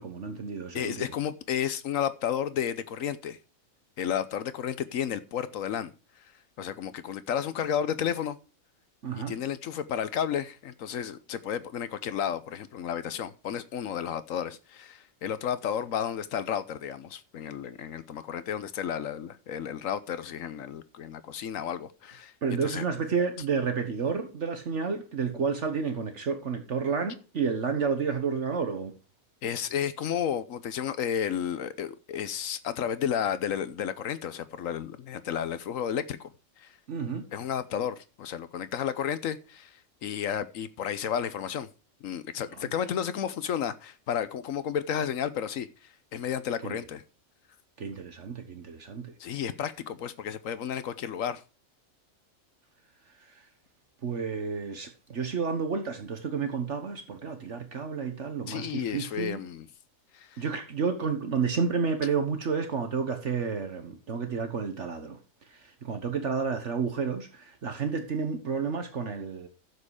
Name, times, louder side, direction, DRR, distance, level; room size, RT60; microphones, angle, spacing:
voice 1, 0.0-1.0 9.0-9.3 22.4-28.9 36.9-37.2 42.6-42.7 46.6-46.8 47.8-49.1 53.2-53.5 54.0-59.4 60.4-65.2 65.5-69.5, right 5 dB, 60° right, 1.5 m, -31 dB
voice 2, 0.7-3.4 4.0-5.9 6.6-8.4 9.3-22.3 22.6-22.8 29.4-36.3 36.6-36.8 37.3-41.7 42.0-45.7 46.1-47.0 49.2-51.4 58.5-59.7 60.1-60.4, left 8 dB, 75° left, 1.2 m, -32 dB
10.5 x 7.7 x 4.8 m
omnidirectional pair, 1.4 m